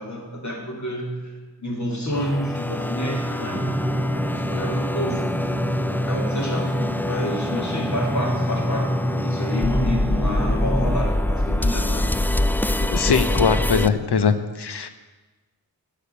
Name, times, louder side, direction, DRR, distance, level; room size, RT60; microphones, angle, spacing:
voice 1, 0.0-1.3 1.6-3.9 4.3-5.3 5.9-6.7 7.0-12.1, left 1 dB, 45° left, -1 dB, 3.1 m, -29 dB
sound 1, 2.1-13.9, left 1 dB, 5° left, 0.3 m, -25 dB
sound 2, 3.5-11.0, equal, 15° right, 1.0 m, -27 dB
voice 2, 12.8-14.9, left 5 dB, 75° left, 10 dB, 1.0 m, -21 dB
11.5 x 7.2 x 8.7 m, 1.2 s
wide cardioid pair, 105°, 40 cm